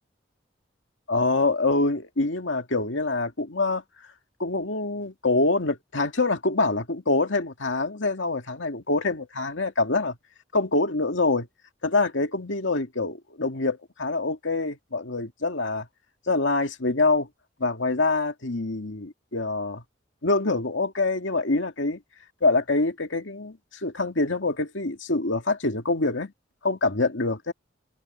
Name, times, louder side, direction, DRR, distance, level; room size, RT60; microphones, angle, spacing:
voice 1, 1.1-3.8 4.4-10.2 10.5-11.5 11.8-15.9 16.3-17.3 17.6-19.8 20.2-22.0 22.4-26.3 26.6-27.5, left 3 dB, 80° left, 2.1 m, -25 dB
head